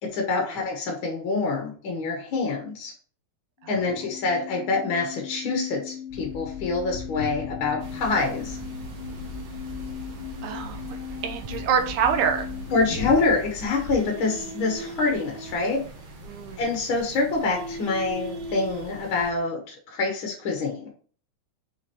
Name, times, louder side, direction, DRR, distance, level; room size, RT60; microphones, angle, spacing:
voice 1, 0.0-2.9 3.7-8.6 12.7-15.8 16.6-20.9, left 3 dB, 55° left, 0 dB, 1.5 m, -26 dB
sound 1, 3.6-13.2, left 9 dB, 80° left, 1.1 m, -38 dB
sound 2, 6.1-14.0, left 4 dB, 30° left, 1.7 m, -40 dB
sound 3, 7.8-19.3, right 2 dB, 65° right, 2.0 m, -40 dB
voice 2, 10.4-10.8 11.2-12.5 16.3-16.6, right 7 dB, 80° right, 6 dB, 2.2 m, -25 dB
5.1 x 4.9 x 4.3 m, 0.43 s
omnidirectional pair, 3.5 m